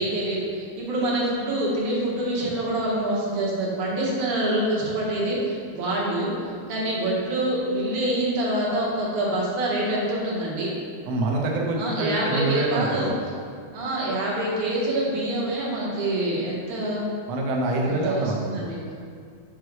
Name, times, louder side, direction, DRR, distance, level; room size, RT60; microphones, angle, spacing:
voice 1, 0.0-10.7 11.8-13.1 13.7-17.1 17.8-18.8, right 1 dB, 85° right, -5 dB, 2.8 m, -26 dB
voice 2, 11.1-13.1 17.3-18.6, right 2 dB, 70° right, -1 dB, 1.8 m, -25 dB
6.4 x 5.3 x 4.6 m, 2.3 s
omnidirectional pair, 3.4 m